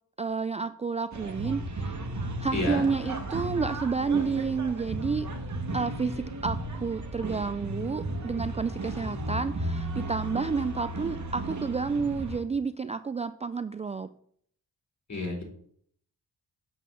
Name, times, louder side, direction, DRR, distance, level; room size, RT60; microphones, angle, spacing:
voice 1, 0.2-2.0 2.4-5.3 5.7-14.1, right 5 dB, 20° right, 12 dB, 0.3 m, -30 dB
sound 1, 1.1-12.4, right 1 dB, 45° right, 1.5 m, -34 dB
voice 2, 2.5-3.2 15.1-15.4, left 2 dB, 45° left, -1 dB, 3.5 m, -31 dB
7.4 x 4.2 x 6.9 m, 0.64 s
cardioid pair, 60°, 40 cm